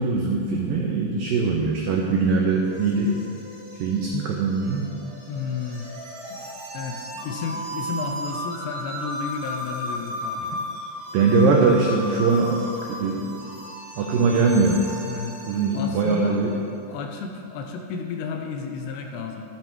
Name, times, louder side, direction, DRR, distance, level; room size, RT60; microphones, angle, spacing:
voice 1, 0.0-3.2 3.8-4.9 11.1-12.6 12.9-13.3 14.0-14.8 15.5-16.5, right 4 dB, 90° right, 0 dB, 2.0 m, -21 dB
sound 1, 2.0-16.5, equal, 35° right, 3.4 m, -36 dB
voice 2, 5.3-5.9 6.3-6.4 6.7-10.7 15.1-16.5 16.9-19.4, left 5 dB, 75° left, 3 dB, 2.7 m, -32 dB
11.5 x 11.5 x 4.6 m, 2.7 s
omnidirectional pair, 5.3 m